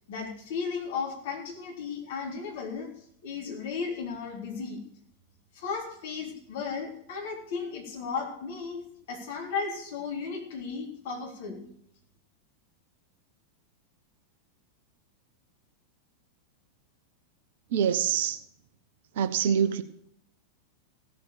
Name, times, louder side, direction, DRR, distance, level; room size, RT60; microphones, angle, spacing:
voice 1, 0.1-2.9 3.2-4.8 5.5-8.8 9.1-11.7, left 5 dB, 55° left, 1 dB, 3.6 m, -35 dB
voice 2, 17.7-18.4 19.1-19.8, right 8 dB, 55° right, 12 dB, 1.0 m, -25 dB
16.0 x 7.6 x 6.8 m, 0.70 s
figure-of-eight pair, 90°, 0 cm